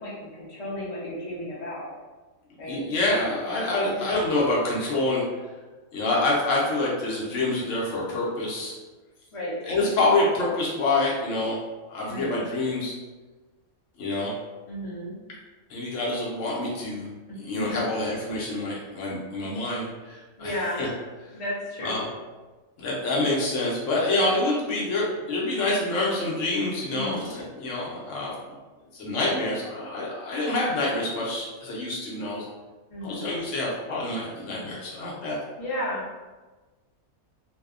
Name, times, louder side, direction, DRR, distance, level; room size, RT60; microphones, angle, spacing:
voice 1, 0.0-1.9 2.6-2.8 3.8-4.3 9.3-9.5 12.0-12.4 14.7-15.1 17.3-17.9 20.4-20.8 21.3-22.0 26.9-27.4 32.9-33.3 35.6-36.1, left 1 dB, 45° left, -6 dB, 0.4 m, -33 dB
voice 2, 2.7-5.2 5.9-8.8 9.6-11.6 11.9-13.0 14.0-14.3 15.7-17.1 17.4-20.9 21.8-22.0 22.8-28.3 28.9-32.4 33.0-35.4, left 2 dB, 70° left, -5 dB, 0.9 m, -27 dB
2.6 x 2.1 x 2.4 m, 1.2 s
omnidirectional pair, 1.5 m